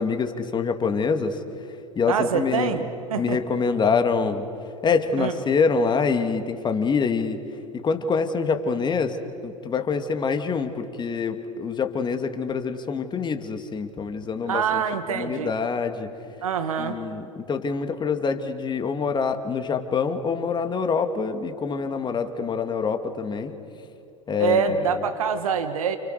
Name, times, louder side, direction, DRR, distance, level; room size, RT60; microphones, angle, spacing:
voice 1, 0.0-1.4 2.0-2.8 3.2-4.5 4.8-7.4 7.7-9.2 9.4-14.8 15.1-16.1 16.8-23.5 24.3-24.8, left 5 dB, 25° left, 7 dB, 2.5 m, -25 dB
voice 2, 2.1-2.8 3.1-3.4 5.2-5.3 14.5-15.5 16.4-17.0 24.4-26.0, right 6 dB, 75° right, 8 dB, 1.8 m, -25 dB
30.0 x 29.5 x 6.8 m, 2.8 s
hypercardioid pair, 85°, 18 cm